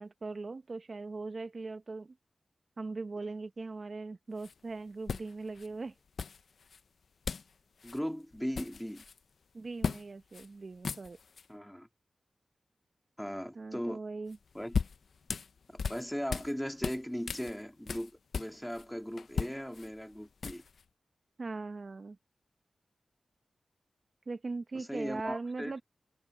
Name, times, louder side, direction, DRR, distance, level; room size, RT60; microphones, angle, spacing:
voice 1, 0.0-2.1 2.8-5.9 9.5-11.2 13.5-14.4 21.4-22.2 24.3-25.8, right 3 dB, 45° right, 0.9 m, -40 dB
sound 1, 4.4-4.5 5.1-5.7 6.2-6.8 7.3-7.5 7.8-8.0 8.3-9.2 9.8-10.0 10.3-10.5 10.7-11.5 14.3-16.5 16.8-18.9 19.2-20.8, left 5 dB, 75° left, 0.5 m, -37 dB
voice 2, 7.8-9.0 11.5-11.9 13.2-14.0 14.5-14.8 15.7-20.6 24.7-25.7, equal, 5° left, 1.9 m, -38 dB
wide cardioid pair, 145°, 0 cm